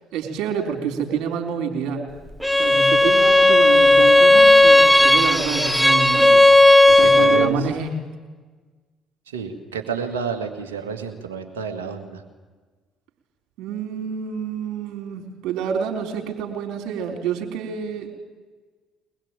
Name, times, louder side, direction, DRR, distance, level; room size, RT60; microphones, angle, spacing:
voice 1, 0.1-2.0 2.6-6.6 7.0-7.9 13.6-18.1, right 6 dB, 65° right, 4 dB, 4.2 m, -28 dB
Bowed string instrument, 2.4-7.6, left 1 dB, ahead, 1.0 m, -14 dB
voice 2, 6.9-7.7 9.3-12.2, right 6 dB, 85° right, 5 dB, 2.0 m, -30 dB
23.0 x 20.5 x 9.1 m, 1.4 s
hypercardioid pair, 50°, 0 cm